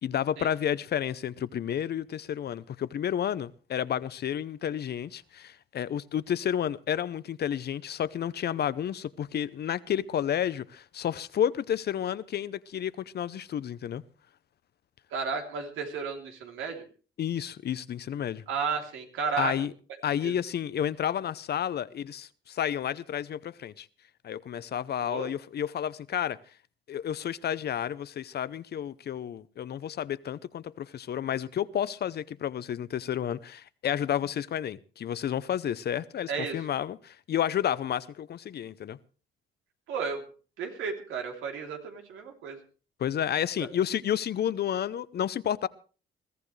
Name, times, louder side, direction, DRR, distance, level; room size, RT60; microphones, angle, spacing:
voice 1, 0.0-14.0 17.2-18.4 19.4-19.7 20.0-23.9 24.2-26.4 26.9-39.0 43.0-45.7, left 9 dB, 55° left, 0.7 m, -31 dB
voice 2, 15.1-16.8 18.5-19.5 20.2-20.4 25.0-25.3 36.3-36.7 39.9-40.2 40.6-42.6, right 5 dB, 85° right, 3.2 m, -33 dB
22.0 x 14.5 x 3.3 m
cardioid pair, 90°, 20 cm